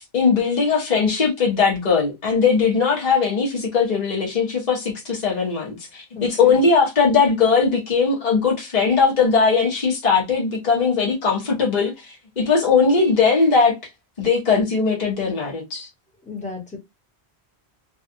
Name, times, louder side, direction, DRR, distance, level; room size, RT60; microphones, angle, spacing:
voice 1, 0.0-13.7 14.2-15.9, left 5 dB, 45° left, 1.0 m, -19 dB
voice 2, 6.1-6.6 16.3-16.8, left 4 dB, 5° left, 1.0 m, -33 dB
2.6 x 2.3 x 2.6 m
omnidirectional pair, 1.1 m